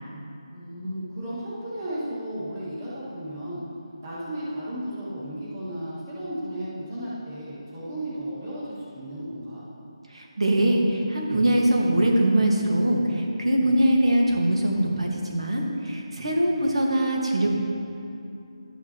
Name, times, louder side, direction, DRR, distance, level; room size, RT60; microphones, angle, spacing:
voice 1, 0.5-3.6 4.0-9.6, right 1 dB, 30° right, -8 dB, 1.9 m, -34 dB
voice 2, 10.1-17.5, right 1 dB, 80° right, 0 dB, 1.7 m, -22 dB
13.0 x 5.8 x 3.0 m, 2.6 s
figure-of-eight pair, 175°, 3 cm